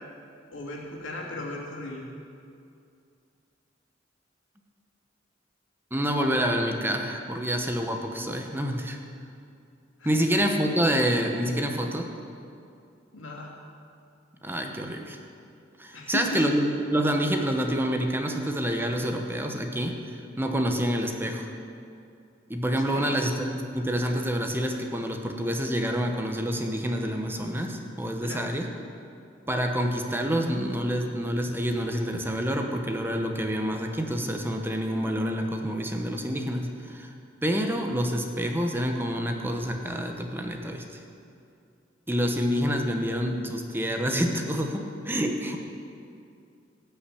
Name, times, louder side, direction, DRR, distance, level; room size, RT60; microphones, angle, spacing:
voice 1, 0.5-2.1 10.0-10.2 13.1-13.5 15.9-16.4 22.8-23.1 28.2-28.4, left 2 dB, 90° left, -2 dB, 2.6 m, -36 dB
voice 2, 5.9-9.0 10.0-12.1 14.4-15.2 15.8-20.0 20.4-21.5 22.5-28.7 29.5-37.1 37.4-41.0 42.1-45.6, equal, 10° right, 3 dB, 1.0 m, -27 dB
17.0 x 5.8 x 8.4 m, 2.5 s
head